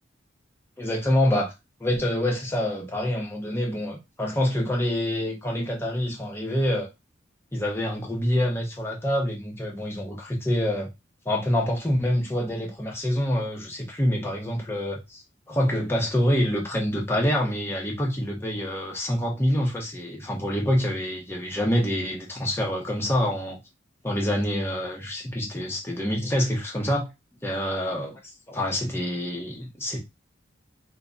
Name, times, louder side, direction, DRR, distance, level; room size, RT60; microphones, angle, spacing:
voice 1, 0.8-1.5 1.8-6.9 7.5-10.9 11.3-15.2 15.5-23.6 24.0-27.1 27.4-28.2 28.5-30.0, equal, 10° left, 0.6 m, -26 dB
2.2 x 2.1 x 3.7 m
head